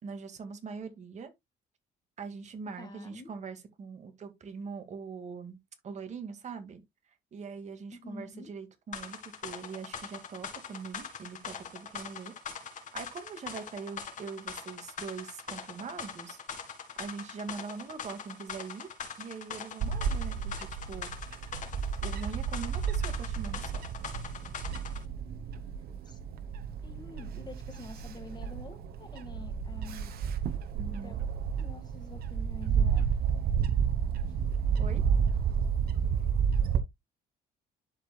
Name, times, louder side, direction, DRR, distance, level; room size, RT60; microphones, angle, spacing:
voice 1, 0.0-1.3 2.2-6.8 7.3-12.3 12.9-16.4 17.0-18.9 19.2-21.1 22.0-23.8 30.8-31.2 34.8-35.0, right 5 dB, 45° right, 2.1 m, -42 dB
voice 2, 2.8-3.3 7.9-8.5 26.0-26.2 26.8-30.3 30.9-31.2 31.6-33.0, left 2 dB, 25° left, 1.8 m, -47 dB
sound 1, 8.9-25.0, left 6 dB, 50° left, 1.9 m, -42 dB
Bird / Wind, 19.8-36.8, right 7 dB, 65° right, 1.1 m, -31 dB
12.0 x 4.9 x 2.3 m
cardioid pair, 110°, 17 cm